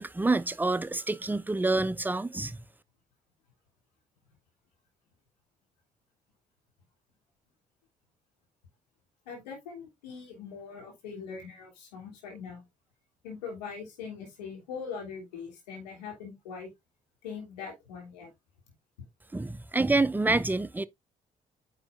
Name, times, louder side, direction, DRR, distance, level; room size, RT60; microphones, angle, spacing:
voice 1, 0.0-2.6 19.3-20.9, right 2 dB, 10° right, 0.6 m, -27 dB
voice 2, 9.2-12.6 13.2-16.7 17.2-18.3, left 6 dB, 75° left, 3.1 m, -41 dB
9.5 x 6.4 x 2.5 m
figure-of-eight pair, 40°, 21 cm